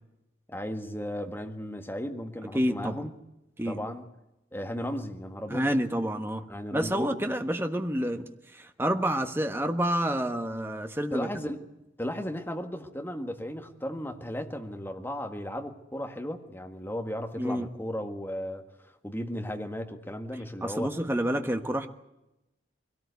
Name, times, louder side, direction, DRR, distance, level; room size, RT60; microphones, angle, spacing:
voice 1, 0.5-3.1 3.6-4.0 4.5-5.7 6.5-7.1 11.1-11.6 12.0-20.9, equal, 10° left, 5 dB, 1.7 m, -35 dB
voice 2, 2.5-3.1 3.6-3.8 5.5-11.3 17.4-17.7 20.6-21.9, equal, 10° right, 7 dB, 1.2 m, -29 dB
22.5 x 17.5 x 8.1 m, 0.94 s
head